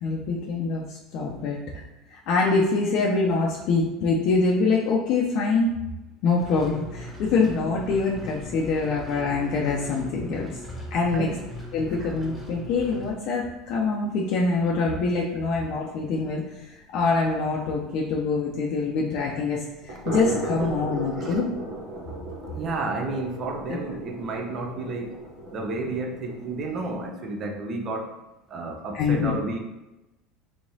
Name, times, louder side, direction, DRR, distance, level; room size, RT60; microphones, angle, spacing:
voice 1, 0.0-1.6 2.1-5.7 6.2-10.5 10.9-11.3 11.7-16.4 16.9-21.5 23.7-23.8 28.9-29.3, left 4 dB, 60° left, -2 dB, 0.5 m, -25 dB
sound 1, 6.4-13.1, left 1 dB, 5° left, 1.2 m, -39 dB
sound 2, 7.6-13.5 13.8-13.9 14.3-14.4 14.8-14.9 15.2-15.3 18.1-18.2 19.7-27.1, right 2 dB, 65° right, 1.2 m, -37 dB
voice 2, 11.1-11.5 21.1-21.4 22.5-25.2 25.5-28.2 28.5-29.6, right 3 dB, 40° right, 3 dB, 0.6 m, -31 dB
3.4 x 3.1 x 2.7 m, 0.98 s
supercardioid pair, 100°, 0 cm